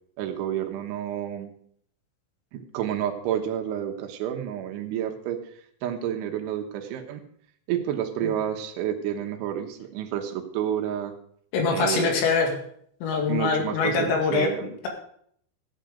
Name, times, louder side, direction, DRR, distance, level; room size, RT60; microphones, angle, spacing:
voice 1, 0.2-1.5 2.5-5.4 5.8-7.2 7.7-11.1 11.7-12.1 13.3-14.7, right 10 dB, 80° right, 5 dB, 3.5 m, -30 dB
voice 2, 11.5-12.5 13.0-14.5, left 5 dB, 75° left, 2 dB, 4.3 m, -23 dB
15.0 x 9.0 x 5.1 m, 0.65 s
omnidirectional pair, 5.5 m